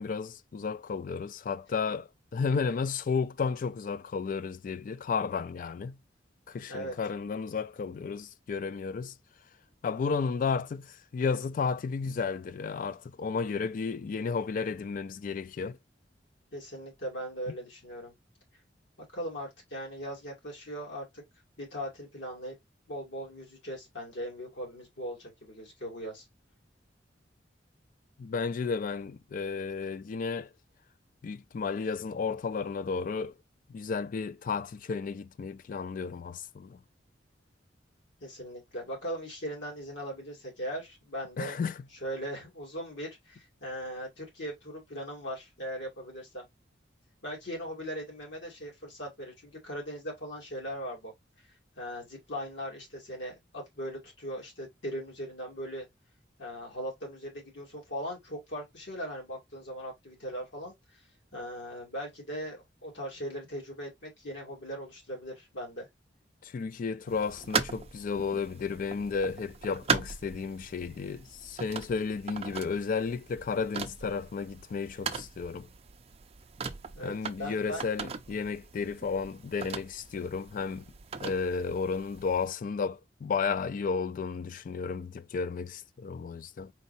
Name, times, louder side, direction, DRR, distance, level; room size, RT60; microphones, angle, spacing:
voice 1, 0.0-2.1 2.3-6.0 6.5-9.1 9.8-15.8 28.2-30.5 31.2-33.3 33.7-36.8 41.4-41.7 66.4-75.7 77.0-80.8 81.2-86.7, left 5 dB, 50° left, 0.3 m, -33 dB
voice 2, 16.5-18.1 19.1-21.2 21.6-22.6 22.9-26.3 38.2-41.6 41.9-46.4 47.2-51.1 51.8-55.9 56.4-60.7 61.3-65.9 76.9-77.9, equal, 80° left, 2.6 m, -39 dB
sound 1, 67.1-82.5, right 5 dB, 35° right, 0.5 m, -39 dB
4.6 x 4.0 x 2.7 m
head